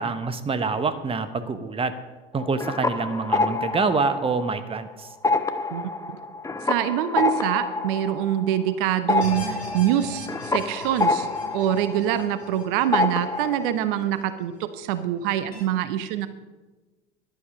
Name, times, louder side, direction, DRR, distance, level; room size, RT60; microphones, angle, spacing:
voice 1, 0.0-1.9 2.3-5.1, right 4 dB, 20° right, 11 dB, 1.0 m, -26 dB
sound 1, 2.4-4.8 5.1-12.6 12.9-13.7, left 3 dB, 10° left, 0.9 m, -27 dB
voice 2, 6.6-11.3 11.5-16.3, right 11 dB, 55° right, 12 dB, 1.0 m, -25 dB
sound 2, 9.2-14.4 14.8-14.9 15.5-15.6, equal, 85° left, 4.6 m, -41 dB
14.5 x 11.5 x 5.0 m, 1.2 s
figure-of-eight pair, 70°, 31 cm